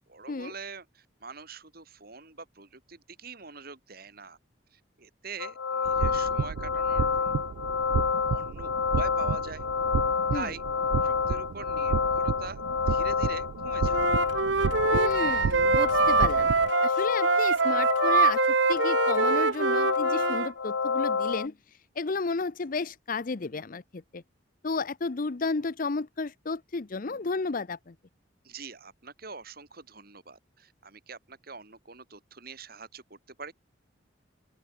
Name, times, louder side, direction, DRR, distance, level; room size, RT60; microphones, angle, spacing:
voice 1, 0.1-4.4 4.7-7.6 8.3-9.7 10.3-14.1 28.4-33.5, right 4 dB, 50° right, 3.5 m, -44 dB
sound 1, 5.4-21.5, left 5 dB, 90° left, 0.8 m, -28 dB
sound 2, 5.8-16.7, right 6 dB, 90° right, 0.4 m, -33 dB
Wind instrument woodwind instrument, 13.9-20.5, right 4 dB, 65° right, 1.2 m, -24 dB
voice 2, 14.9-16.5 16.8-21.5 22.0-24.2 24.6-27.9, left 3 dB, 45° left, 0.6 m, -32 dB
open air
head